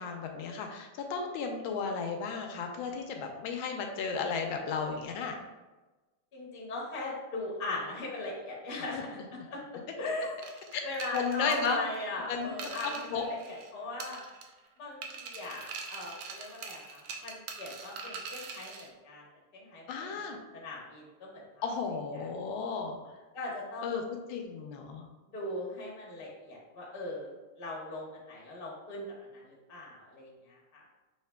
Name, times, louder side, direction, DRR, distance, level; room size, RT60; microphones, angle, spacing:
voice 1, 0.0-5.4 8.9-9.0 10.7-10.8 11.1-11.8 12.3-12.5 12.8-13.2 19.9-20.4 21.6-23.0 23.8-25.1, left 5 dB, 75° left, 3 dB, 1.3 m, -34 dB
voice 2, 6.3-9.2 9.5-9.6 10.0-10.4 10.8-14.2 14.8-19.2 19.5-20.2 20.5-21.6 22.2-22.3 23.3-24.0 25.3-29.1 29.3-30.8, left 2 dB, 40° left, -4 dB, 0.8 m, -39 dB
sound 1, 10.4-13.7 14.0-14.7 15.0-18.9, right 5 dB, 75° right, 1.2 m, -43 dB
6.4 x 3.0 x 2.2 m, 1.2 s
omnidirectional pair, 2.3 m